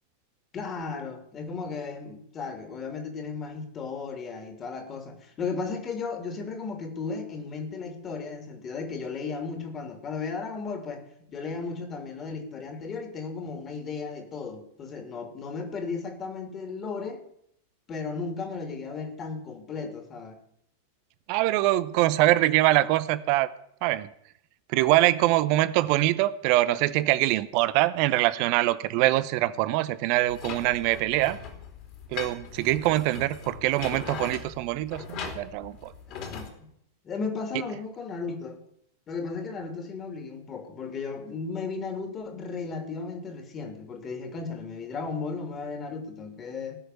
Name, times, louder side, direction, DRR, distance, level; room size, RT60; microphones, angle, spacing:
voice 1, 0.5-11.0 11.3-17.2 17.9-20.4 36.1-36.5 37.0-38.6 39.1-46.8, left 4 dB, 25° left, 5 dB, 2.8 m, -35 dB
voice 2, 21.3-23.5 23.8-24.1 24.7-31.4 32.1-35.9, right 16 dB, 45° right, 15 dB, 0.8 m, -24 dB
sound 1, 30.3-36.5, left 5 dB, 40° left, 3.4 m, -39 dB
18.0 x 6.6 x 9.3 m, 0.72 s
figure-of-eight pair, 90°, 0 cm